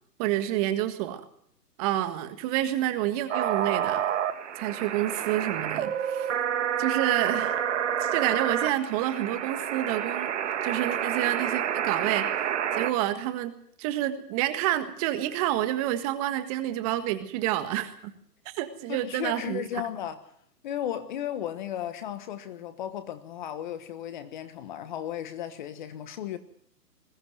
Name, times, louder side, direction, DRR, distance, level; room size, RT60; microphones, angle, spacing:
voice 1, 0.2-1.2 1.8-4.0 4.6-6.3 6.8-7.6 8.0-13.5 13.8-18.1 18.4-19.6, right 13 dB, 20° right, 1.7 m, -29 dB
sound 1, 3.3-12.9, right 9 dB, 45° right, 2.1 m, -29 dB
voice 2, 18.9-20.2 20.6-26.4, left 10 dB, 30° left, 1.3 m, -35 dB
21.0 x 17.5 x 7.8 m
hypercardioid pair, 145°, 49 cm